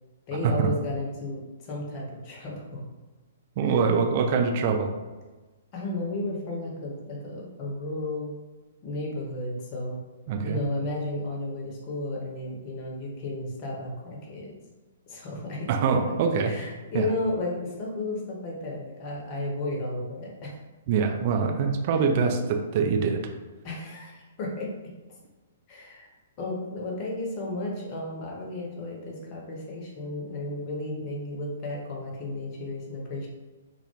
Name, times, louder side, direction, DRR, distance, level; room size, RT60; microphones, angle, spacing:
voice 1, 0.3-2.9 3.6-3.8 5.7-8.3 8.8-10.0 10.4-14.5 15.1-15.8 16.4-20.6 21.9-22.0 23.6-24.7 25.7-26.1 26.4-33.3, left 2 dB, 35° left, -2 dB, 0.7 m, -33 dB
voice 2, 3.6-4.9 10.3-10.6 15.7-16.5 16.9-17.1 20.9-23.2, right 5 dB, 40° right, 4 dB, 0.3 m, -24 dB
2.2 x 2.1 x 3.0 m, 1.2 s
figure-of-eight pair, 115°, 0 cm